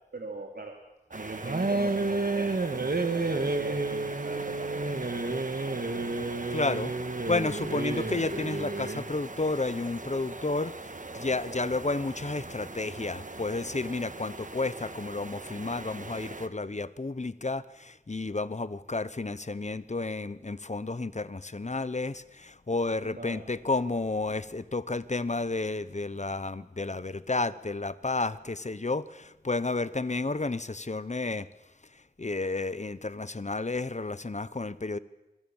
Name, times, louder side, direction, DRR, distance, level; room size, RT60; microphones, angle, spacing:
voice 1, 0.1-0.7 1.1-2.5 2.8-5.4 23.0-23.4, right 3 dB, 85° right, 2 dB, 2.9 m, -41 dB
sound 1, 1.1-16.5, right 2 dB, 55° right, 1.5 m, -41 dB
sound 2, 1.4-9.1, right 3 dB, 70° right, 2.0 m, -30 dB
voice 2, 6.5-6.9 7.3-10.7 11.1-31.5 32.2-35.0, left 3 dB, 50° left, 16 dB, 1.0 m, -31 dB
26.0 x 22.5 x 7.3 m, 0.99 s
wide cardioid pair, 55°, 16 cm